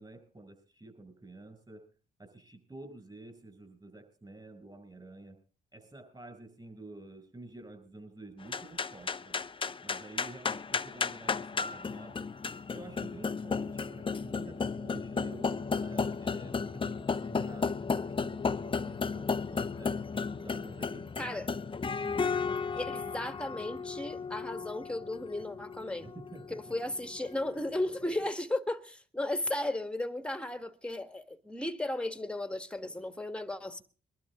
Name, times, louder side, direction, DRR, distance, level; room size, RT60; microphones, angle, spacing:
voice 1, 0.0-1.8 2.2-5.4 5.7-9.4 9.8-12.3 12.7-21.4 21.8-22.7 26.0-26.8, right 2 dB, 20° right, 7.1 m, -50 dB
sound 1, 8.4-27.9, left 5 dB, 25° left, 0.8 m, -34 dB
voice 2, 22.8-26.1 26.5-33.8, left 1 dB, 5° left, 1.8 m, -35 dB
23.5 x 12.5 x 3.8 m
cardioid pair, 90°, 20 cm